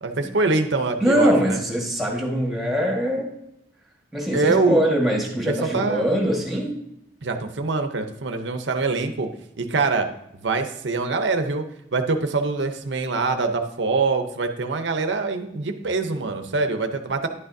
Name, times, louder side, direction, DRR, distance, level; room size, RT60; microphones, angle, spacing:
voice 1, 0.0-1.6 4.3-4.8 5.5-6.1 7.2-9.3 9.6-10.1 10.3-11.6 11.9-17.3, right 3 dB, 80° right, 6 dB, 0.7 m, -24 dB
voice 2, 1.0-3.3 4.1-6.8, equal, ahead, -1 dB, 1.6 m, -22 dB
11.0 x 8.8 x 2.7 m, 0.77 s
head